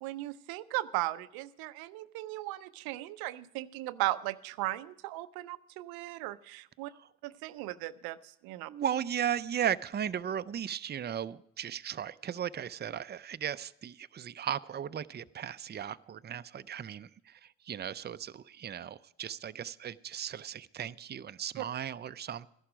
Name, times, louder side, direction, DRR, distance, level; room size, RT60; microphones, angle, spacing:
voice 1, 0.0-6.9 7.2-8.7 21.6-21.7, right 17 dB, 90° right, 14 dB, 0.5 m, -37 dB
voice 2, 8.7-22.5, right 9 dB, 30° right, 14 dB, 0.5 m, -36 dB
13.5 x 11.0 x 5.0 m, 0.75 s
supercardioid pair, 50°, 35 cm